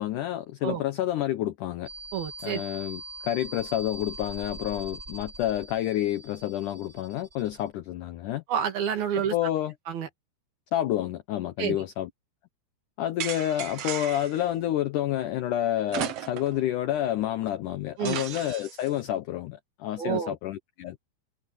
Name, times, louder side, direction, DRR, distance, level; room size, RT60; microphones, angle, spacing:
voice 1, 0.0-1.9 2.4-8.4 9.3-9.7 10.7-12.1 13.0-21.0, left 12 dB, 80° left, 1.8 m, -29 dB
sound 1, 1.8-7.7, right 2 dB, 15° right, 6.7 m, -43 dB
voice 2, 2.1-2.6 8.5-9.4 9.9-10.1 11.6-11.8 18.0-18.2 20.0-20.4, right 8 dB, 65° right, 4.2 m, -28 dB
sound 2, 13.2-14.4 15.9-16.6 17.0-17.1 18.0-18.9, right 10 dB, 80° right, 1.4 m, -35 dB
omnidirectional pair, 4.6 m